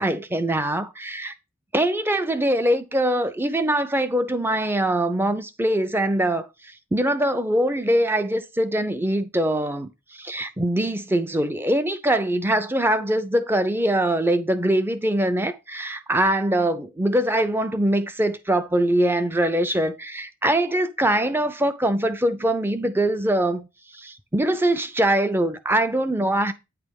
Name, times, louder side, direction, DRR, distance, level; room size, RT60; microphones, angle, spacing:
voice 1, 0.0-1.3 1.7-6.5 6.9-23.7 23.9-26.5, right 1 dB, 10° right, 0.6 m, -23 dB
9.1 x 3.4 x 5.2 m
head